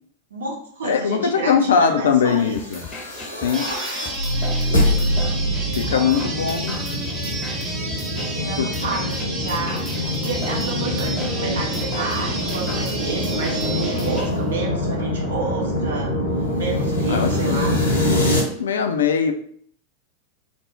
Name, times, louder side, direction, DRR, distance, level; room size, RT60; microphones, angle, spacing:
voice 1, 0.3-2.6 3.7-4.1 5.8-6.3 8.1-16.1 16.5-17.8, right 3 dB, 65° right, -1 dB, 0.8 m, -31 dB
voice 2, 0.8-2.8 3.4-3.7 5.8-6.7 8.6-8.7 17.1-17.6 18.6-19.3, left 6 dB, 65° left, 6 dB, 0.3 m, -20 dB
sound 1, 2.6-18.4, left 1 dB, 80° left, 0.8 m, -24 dB
sound 2, 2.6-14.6, left 2 dB, 20° left, 0.7 m, -38 dB
sound 3, 3.5-14.2, right 2 dB, 20° right, 0.6 m, -31 dB
2.5 x 2.0 x 3.4 m, 0.62 s
figure-of-eight pair, 90°, 0 cm